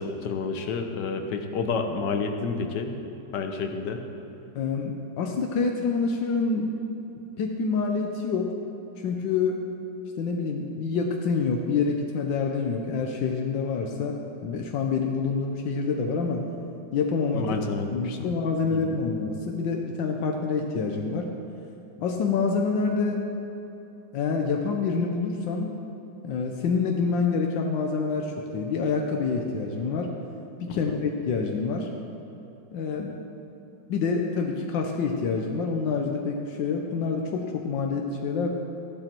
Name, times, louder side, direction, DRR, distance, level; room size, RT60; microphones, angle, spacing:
voice 1, 0.0-3.0 3.3-4.0 17.3-18.3 18.7-19.0 30.9-31.0, left 4 dB, 70° left, 5 dB, 1.6 m, -30 dB
voice 2, 4.6-6.7 7.4-8.5 9.0-9.6 10.2-14.2 14.4-16.4 16.9-17.5 17.9-21.3 22.0-23.3 24.1-25.7 26.2-30.1 30.6-31.9 32.7-33.2 33.9-38.5, left 4 dB, 85° left, 1 dB, 1.6 m, -27 dB
15.0 x 11.5 x 4.5 m, 2.9 s
omnidirectional pair, 2.0 m